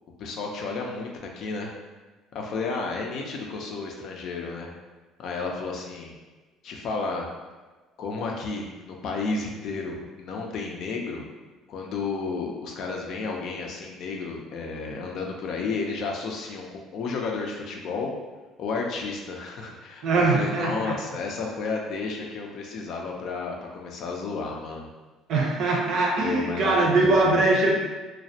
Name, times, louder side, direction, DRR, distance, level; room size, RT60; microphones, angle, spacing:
voice 1, 0.2-1.7 2.3-4.7 5.2-6.1 6.6-7.3 8.0-11.2 11.7-18.1 18.6-24.9 26.2-27.4, left 4 dB, 60° left, 1 dB, 0.4 m, -32 dB
voice 2, 20.0-20.9 25.3-27.8, right 3 dB, 60° right, -1 dB, 0.6 m, -22 dB
2.3 x 2.1 x 2.7 m, 1.3 s
supercardioid pair, 90°, 0 cm